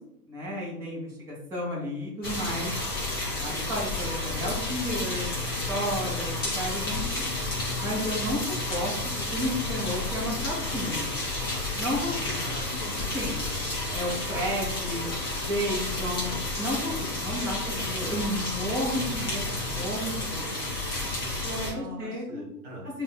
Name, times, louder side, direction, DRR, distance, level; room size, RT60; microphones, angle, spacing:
voice 1, 0.2-2.7 3.3-5.4 5.7-7.3 7.8-8.4 8.7-11.1 11.8-12.4 13.1-13.4 13.9-15.1 15.5-20.5 21.4-22.4 22.9-23.0, equal, 5° right, -9 dB, 1.3 m, -32 dB
sound 1, 2.2-21.7, left 2 dB, 15° left, 0.4 m, -31 dB
voice 2, 11.9-13.1 14.3-14.5 21.7-22.9, equal, 35° right, -3 dB, 1.4 m, -43 dB
7.4 x 2.7 x 2.2 m, 0.76 s
hypercardioid pair, 135°, 47 cm